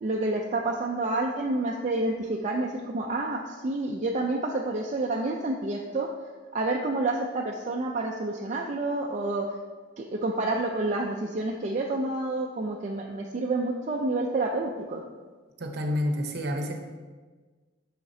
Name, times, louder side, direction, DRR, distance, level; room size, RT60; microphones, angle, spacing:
voice 1, 0.0-6.1 6.5-9.5 10.0-15.0, right 2 dB, 35° right, -1 dB, 0.4 m, -29 dB
voice 2, 15.6-16.7, left 1 dB, 55° right, 4 dB, 0.8 m, -29 dB
7.2 x 5.7 x 2.7 m, 1.4 s
head